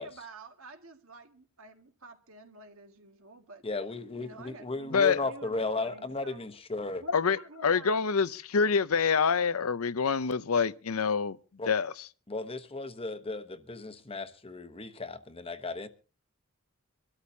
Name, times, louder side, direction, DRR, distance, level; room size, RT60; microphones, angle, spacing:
voice 1, 0.0-3.6 4.2-6.5 7.0-8.0, right 3 dB, 70° right, 1.9 m, -50 dB
voice 2, 3.6-7.0 11.6-11.7 12.3-15.9, left 3 dB, 25° left, 1.0 m, -35 dB
voice 3, 7.1-11.4 11.7-11.9, left 5 dB, 80° left, 0.6 m, -26 dB
25.0 x 13.0 x 2.8 m
head